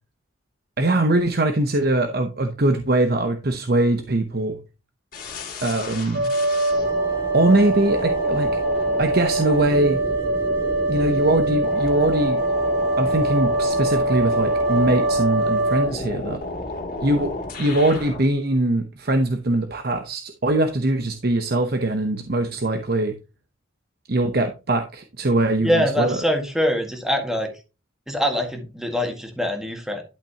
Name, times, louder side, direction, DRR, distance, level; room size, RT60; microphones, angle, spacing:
voice 1, 0.8-4.6 5.6-6.3 7.3-8.6 9.0-10.0 10.9-12.4 13.0-16.4 17.0-17.3 17.6-23.1 24.1-26.2, right 1 dB, 50° right, 7 dB, 0.8 m, -22 dB
sound 1, 5.1-18.3, left 2 dB, 45° left, 2.7 m, -32 dB
sound 2, 6.1-15.9, right 2 dB, 65° right, 3.3 m, -23 dB
voice 2, 25.6-27.5 28.1-30.0, equal, ahead, 3 dB, 1.9 m, -23 dB
11.5 x 5.9 x 2.9 m, 0.29 s
head